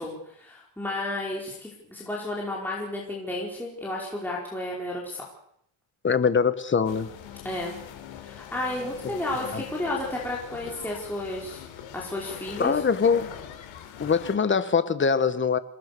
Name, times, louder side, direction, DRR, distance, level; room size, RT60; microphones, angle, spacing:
voice 1, 0.0-5.2 7.4-7.7 8.2-11.6 11.9-12.8, left 1 dB, 5° left, 4.9 m, -32 dB
voice 2, 6.0-7.1 9.0-9.1 9.5-9.6 12.6-13.3 14.0-15.6, left 6 dB, 25° left, 1.2 m, -23 dB
sound 1, 6.9-14.4, left 9 dB, 65° left, 3.9 m, -42 dB
28.0 x 18.5 x 6.9 m
cardioid pair, 165°, 49 cm